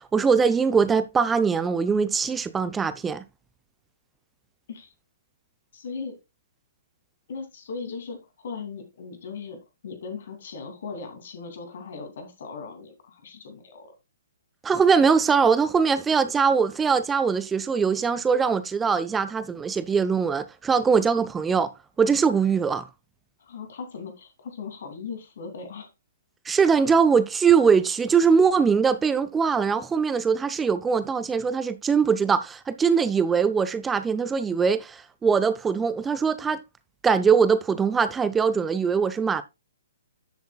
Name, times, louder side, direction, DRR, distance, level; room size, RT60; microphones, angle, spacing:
voice 1, 0.1-3.2 14.6-21.7 22.0-22.9 26.5-36.6 37.0-39.4, right 6 dB, 10° right, 0.5 m, -22 dB
voice 2, 5.7-6.1 7.3-13.9 23.4-25.9, left 5 dB, 50° left, 2.7 m, -38 dB
10.0 x 8.0 x 2.3 m
figure-of-eight pair, 125°, 0 cm